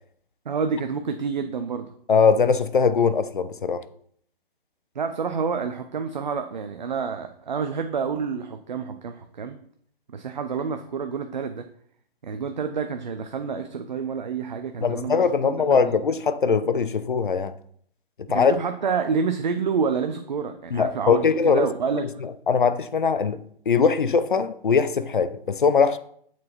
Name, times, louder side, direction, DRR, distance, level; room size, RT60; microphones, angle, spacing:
voice 1, 0.4-1.9 4.9-9.6 10.1-11.7 12.2-16.0 18.3-22.2, right 5 dB, 50° right, 0.8 m, -28 dB
voice 2, 2.1-3.8 14.8-17.5 18.3-18.5 20.7-21.7 22.5-23.4 23.7-26.0, left 5 dB, 55° left, 0.8 m, -21 dB
8.4 x 6.2 x 4.4 m
figure-of-eight pair, 135°, 30 cm